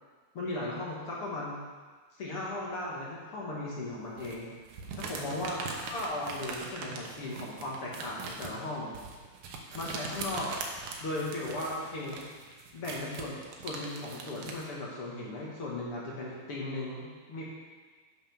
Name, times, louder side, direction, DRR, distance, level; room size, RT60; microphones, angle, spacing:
voice 1, 0.3-1.6 2.2-4.5 5.0-8.9 9.7-10.5 11.0-12.2 12.7-17.4, left 2 dB, 45° left, -5 dB, 2.1 m, -37 dB
sound 1, 4.2-14.7, right 4 dB, 70° right, 2.4 m, -41 dB
10.5 x 5.8 x 6.0 m, 1.4 s
omnidirectional pair, 4.2 m